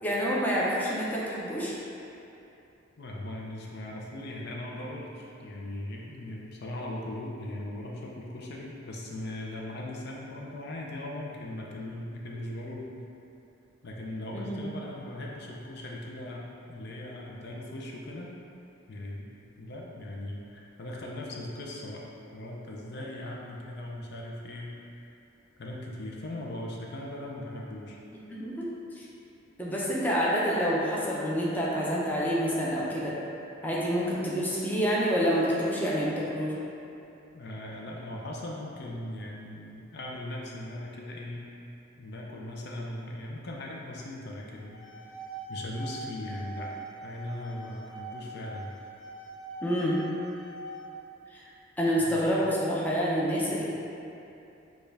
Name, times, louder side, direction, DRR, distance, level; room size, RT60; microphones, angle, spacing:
voice 1, 0.0-1.7 14.3-14.6 28.3-28.7 29.0-29.1 29.6-33.1 33.6-36.5 49.6-50.0 51.3-51.4 51.8-53.6, equal, 10° left, -6 dB, 0.5 m, -27 dB
voice 2, 3.0-12.8 13.8-18.3 18.9-19.3 19.6-22.0 22.3-24.8 25.6-28.0 37.3-41.5 42.0-44.8 45.5-46.7 47.0-48.7 52.0-52.3, left 1 dB, 55° left, -2 dB, 0.5 m, -39 dB
sound 1, 44.6-50.8, right 2 dB, 85° left, 1.1 m, -43 dB
6.6 x 2.3 x 3.3 m, 2.7 s
head